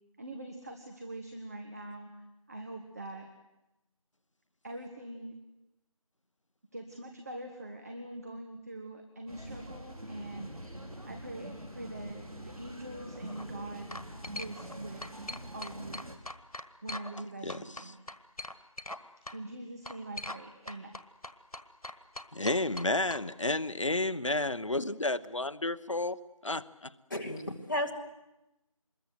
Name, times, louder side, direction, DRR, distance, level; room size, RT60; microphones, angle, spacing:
voice 1, 0.2-2.1 2.5-3.3 4.6-5.4 6.7-10.8 11.1-14.0 14.4-15.1 15.5-16.0 16.8-18.0 19.3-20.9, right 1 dB, 25° right, 1.5 m, -43 dB
sound 1, 9.3-16.2, right 1 dB, 80° right, 4.4 m, -45 dB
sound 2, 13.1-13.4 13.9-14.8 15.0-17.2 17.5-19.0 19.3-19.4 19.9-20.4 20.7-23.2, left 1 dB, 90° left, 1.7 m, -41 dB
voice 2, 17.4-17.8 22.3-26.2 26.4-26.9, left 2 dB, 60° left, 1.0 m, -31 dB
voice 3, 27.1-27.9, left 1 dB, 35° left, 2.6 m, -33 dB
25.0 x 21.5 x 8.0 m
figure-of-eight pair, 170°, 18 cm